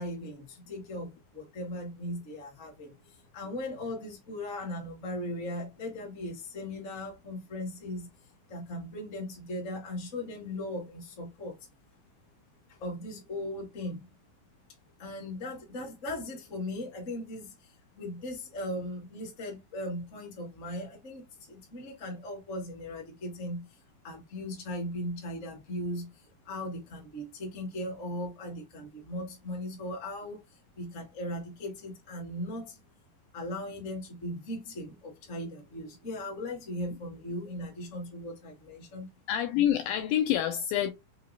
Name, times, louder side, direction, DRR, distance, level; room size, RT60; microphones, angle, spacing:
voice 1, 0.0-8.1 8.5-11.6 12.7-14.1 15.0-23.7 24.0-32.8 33.3-39.1, left 1 dB, 40° left, 1.0 m, -38 dB
voice 2, 39.3-40.9, left 11 dB, 80° left, 2.1 m, -27 dB
5.7 x 2.9 x 2.5 m
omnidirectional pair, 4.5 m